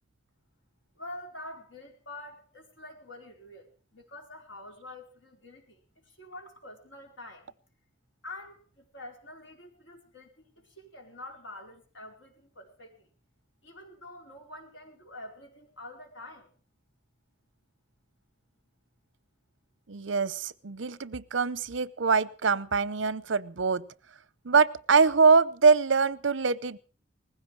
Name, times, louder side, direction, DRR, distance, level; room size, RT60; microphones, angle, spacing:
voice 1, 0.9-7.5 8.2-13.1 13.6-16.5, left 1 dB, 80° left, 4.6 m, -46 dB
voice 2, 19.9-23.8 24.4-26.8, right 5 dB, 75° right, 0.7 m, -24 dB
19.5 x 16.0 x 4.6 m
head